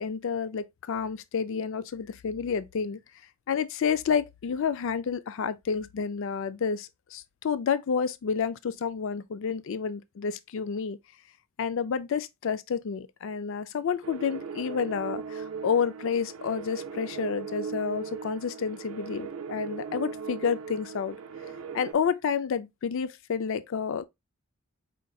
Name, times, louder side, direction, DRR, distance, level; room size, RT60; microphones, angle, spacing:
voice 1, 0.0-3.0 3.5-11.0 11.6-21.2 21.7-24.1, left 6 dB, 65° left, 0.4 m, -30 dB
sound 1, 14.0-21.9, right 6 dB, 85° right, 0.5 m, -38 dB
4.4 x 3.8 x 2.2 m
head